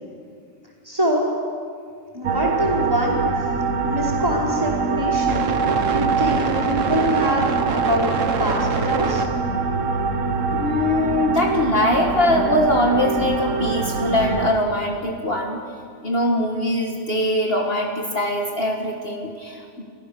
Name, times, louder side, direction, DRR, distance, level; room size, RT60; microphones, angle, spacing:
voice 1, 0.8-1.3 2.1-3.2 3.8-9.2, equal, 15° right, -4 dB, 4.8 m, -24 dB
sound 1, 2.2-14.5, right 5 dB, 70° right, 1.4 m, -23 dB
voice 2, 10.5-15.6 16.0-19.8, left 1 dB, 50° left, 1 dB, 1.8 m, -22 dB
29.5 x 15.0 x 6.8 m, 2.2 s
omnidirectional pair, 1.4 m